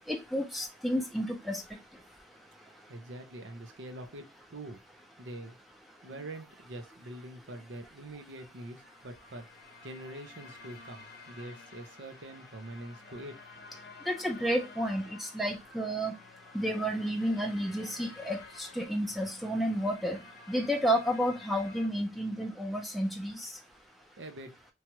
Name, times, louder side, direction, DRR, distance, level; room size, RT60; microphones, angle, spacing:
voice 1, 0.1-1.6 14.1-16.1 16.5-20.2 20.5-23.5, equal, ahead, 0.4 m, -31 dB
voice 2, 2.9-4.2 4.5-4.8 5.2-5.6 6.0-9.5 9.8-13.4 24.2-24.6, right 1 dB, 80° right, 0.7 m, -44 dB
sound 1, 8.4-21.9, left 4 dB, 60° left, 0.7 m, -52 dB
3.0 x 2.4 x 2.9 m
head